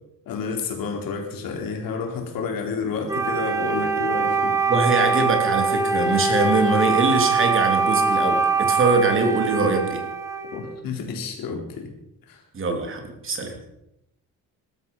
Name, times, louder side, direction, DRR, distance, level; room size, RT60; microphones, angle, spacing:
voice 1, 0.3-4.6 10.5-11.9 12.3-12.4, left 5 dB, 80° left, 2 dB, 4.0 m, -30 dB
Wind instrument woodwind instrument, 3.1-10.8, right 4 dB, 10° right, 1.3 m, -23 dB
voice 2, 4.7-10.0 12.5-13.6, right 3 dB, 35° right, 4 dB, 3.2 m, -22 dB
20.5 x 12.5 x 5.5 m, 0.83 s
cardioid pair, 165°, 34 cm